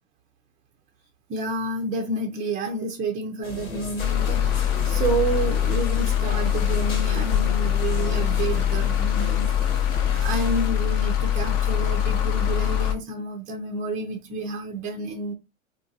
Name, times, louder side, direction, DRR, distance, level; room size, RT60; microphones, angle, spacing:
voice 1, 1.3-9.8 10.1-15.3, right 3 dB, 20° right, 0.4 m, -30 dB
sound 1, 3.4-10.7, left 4 dB, 80° left, 1.2 m, -34 dB
sound 2, 4.0-12.9, left 10 dB, 40° left, 0.6 m, -23 dB
3.9 x 2.3 x 2.6 m
hypercardioid pair, 95°, 40 cm